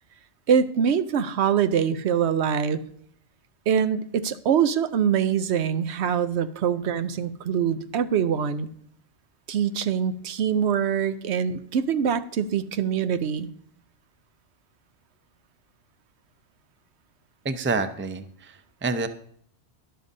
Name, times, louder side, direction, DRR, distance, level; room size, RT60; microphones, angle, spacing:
voice 1, 0.5-2.8 3.7-8.7 9.5-13.5, right 7 dB, 80° right, 12 dB, 0.9 m, -24 dB
voice 2, 17.4-19.1, right 3 dB, 15° right, 10 dB, 0.4 m, -28 dB
12.5 x 11.5 x 2.7 m, 0.64 s
omnidirectional pair, 1.1 m